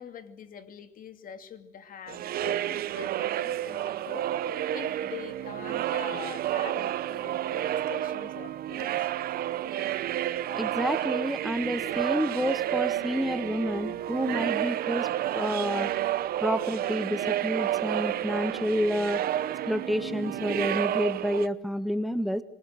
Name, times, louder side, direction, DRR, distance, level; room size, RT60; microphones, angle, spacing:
voice 1, 0.0-9.1, left 8 dB, 55° left, 9 dB, 2.7 m, -44 dB
sound 1, 2.1-21.5, right 12 dB, 65° right, 0.9 m, -30 dB
voice 2, 10.5-15.1 15.3-15.9 16.4-19.3 19.7-22.4, equal, ahead, 12 dB, 1.3 m, -29 dB
26.5 x 22.0 x 7.8 m, 0.79 s
cardioid pair, 110°, 17 cm